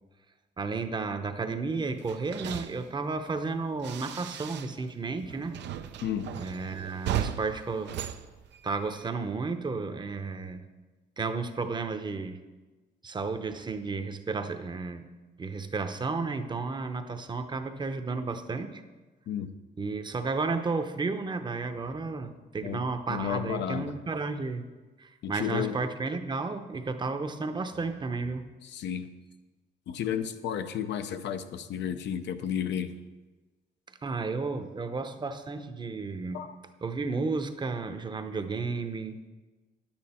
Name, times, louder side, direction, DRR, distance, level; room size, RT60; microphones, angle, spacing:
voice 1, 0.6-5.6 6.3-7.9 8.6-10.6 11.2-12.4 13.0-15.1 15.4-18.8 19.8-24.7 25.0-28.5 34.0-36.4 36.8-39.2, right 4 dB, 25° right, 9 dB, 0.7 m, -32 dB
sound 1, 2.0-4.9 5.2-9.1, right 11 dB, 85° right, 0.5 m, -37 dB
voice 2, 6.0-6.3 19.3-19.5 22.6-23.9 25.2-25.8 28.6-29.1 29.9-32.9 36.3-36.5, left 9 dB, 85° left, 9 dB, 0.7 m, -32 dB
9.9 x 8.8 x 4.3 m, 1.2 s
cardioid pair, 120°, 18 cm